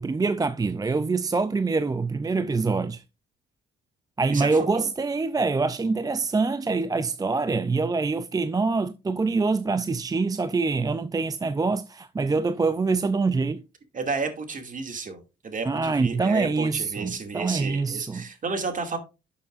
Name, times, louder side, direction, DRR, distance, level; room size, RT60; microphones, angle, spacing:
voice 1, 0.0-3.0 4.2-13.6 15.6-18.3, right 4 dB, 20° right, 0.4 m, -25 dB
voice 2, 4.3-4.9 13.9-19.0, right 4 dB, 40° right, 2.4 m, -32 dB
11.5 x 6.8 x 2.5 m
cardioid pair, 90°, 20 cm